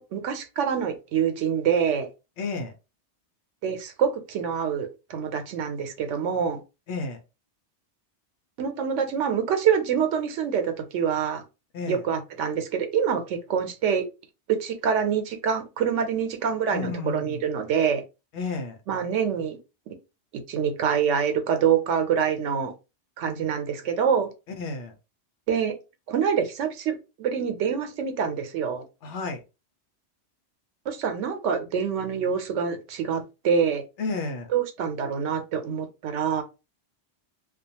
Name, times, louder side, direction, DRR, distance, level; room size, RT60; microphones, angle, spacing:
voice 1, 0.0-2.1 3.6-6.6 8.6-11.4 11.9-14.1 14.5-18.0 18.9-19.6 19.9-20.0 20.5-22.7 23.2-24.3 25.5-25.7 26.1-28.8 30.9-33.8 34.5-36.4, right 7 dB, 90° right, 0.9 m, -26 dB
voice 2, 2.4-2.7 6.9-7.2 11.7-12.0 16.7-17.4 18.3-18.8 23.2-23.5 24.6-24.9 29.0-29.4 34.0-34.5, left 3 dB, 75° left, 1.0 m, -32 dB
2.4 x 2.2 x 2.7 m
omnidirectional pair, 1.2 m